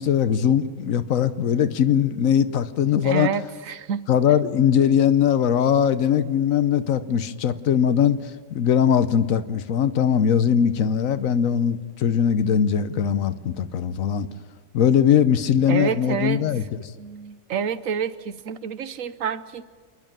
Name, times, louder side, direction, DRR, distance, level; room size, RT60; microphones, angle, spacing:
voice 1, 0.0-3.3 4.1-8.2 8.5-14.3 14.7-16.8, left 8 dB, 80° left, 12 dB, 1.2 m, -20 dB
voice 2, 3.0-4.1 15.7-16.7 17.0-19.7, right 7 dB, 75° right, 13 dB, 1.2 m, -28 dB
27.5 x 11.0 x 9.0 m, 1.5 s
omnidirectional pair, 1.4 m